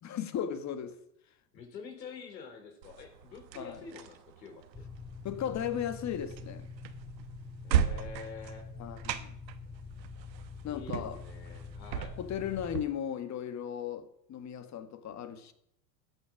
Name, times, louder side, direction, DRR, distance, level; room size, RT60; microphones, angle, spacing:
voice 1, 0.0-1.0 3.5-3.8 5.2-6.7 8.8-9.3 10.6-11.2 12.2-15.5, left 9 dB, 35° left, 1.6 m, -36 dB
voice 2, 1.5-4.6 7.6-8.7 10.6-12.2, left 5 dB, 85° left, 3.8 m, -47 dB
sound 1, 2.8-12.8, right 9 dB, 85° right, 1.2 m, -37 dB
sound 2, 4.7-12.8, left 4 dB, 10° left, 2.3 m, -46 dB
14.0 x 8.9 x 6.1 m
hypercardioid pair, 95°, 50 cm